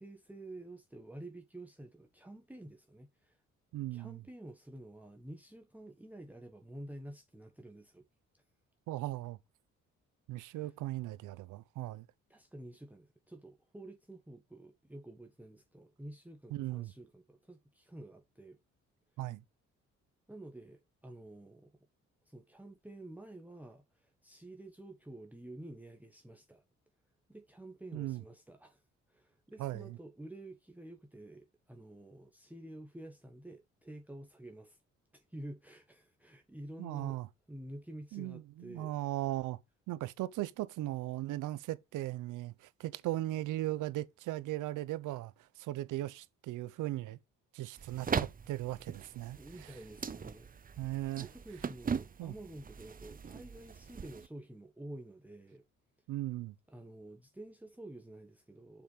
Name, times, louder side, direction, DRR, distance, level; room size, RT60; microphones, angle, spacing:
voice 1, 0.0-3.4 3.9-8.0 8.3-8.4 10.5-10.7 12.3-18.6 20.3-21.7 22.2-26.6 27.3-28.8 29.1-34.8 35.1-37.2 37.5-38.9 49.3-50.8 51.2-55.6 56.7-58.8, right 1 dB, 5° right, 1.3 m, -50 dB
voice 2, 3.7-4.2 8.9-9.4 10.3-12.1 16.5-16.9 19.2-19.4 27.9-28.2 29.6-30.0 36.8-37.3 38.1-39.6 39.9-47.2 47.5-49.7 50.8-51.3 52.2-52.3 56.1-56.6, right 16 dB, 90° right, 0.8 m, -38 dB
sound 1, 47.8-54.3, right 6 dB, 30° right, 0.7 m, -40 dB
7.1 x 5.5 x 5.0 m
cardioid pair, 90°, 30 cm